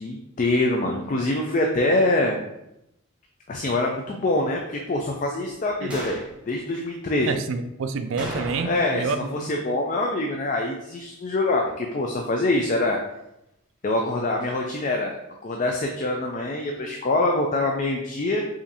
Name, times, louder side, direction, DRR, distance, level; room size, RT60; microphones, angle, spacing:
voice 1, 0.0-2.4 3.5-6.2 6.5-7.3 8.6-13.0 13.8-15.2 15.4-18.4, left 2 dB, 35° left, 1 dB, 0.3 m, -24 dB
sound 1, 5.9-6.3 8.2-9.0 9.3-9.4 14.4-14.5, equal, 5° right, 0.9 m, -35 dB
voice 2, 7.3-9.5, right 4 dB, 65° right, 9 dB, 0.3 m, -28 dB
4.9 x 2.6 x 2.7 m, 0.86 s
head